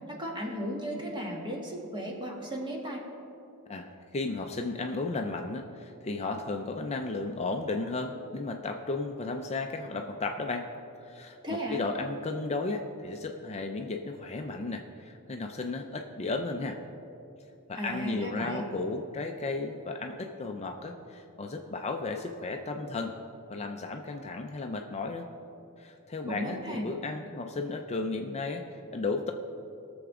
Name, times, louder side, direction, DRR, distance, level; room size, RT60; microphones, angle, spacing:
voice 1, 0.1-3.0 11.4-11.8 17.7-18.6 26.3-26.9, equal, 20° right, -1 dB, 1.6 m, -35 dB
voice 2, 3.7-10.7 11.0-16.8 17.7-23.1 23.5-25.3 25.8-29.3, left 3 dB, 30° left, 4 dB, 0.5 m, -34 dB
19.5 x 7.0 x 3.7 m, 2.7 s
head